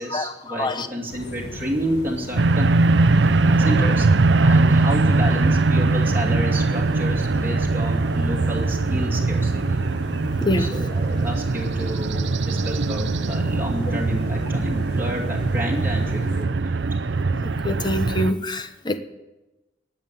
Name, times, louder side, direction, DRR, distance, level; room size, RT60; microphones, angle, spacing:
voice 1, 0.0-2.7 3.0-3.1 3.4-9.8 10.6-16.8, equal, 10° right, -3 dB, 2.6 m, -30 dB
sound 1, 1.1-16.4, left 1 dB, 70° left, 1.8 m, -36 dB
sound 2, 2.4-18.3, right 3 dB, 80° right, 0.6 m, -21 dB
voice 2, 17.6-19.0, left 1 dB, 25° left, 10 dB, 1.0 m, -24 dB
19.5 x 7.2 x 9.1 m, 1.1 s
head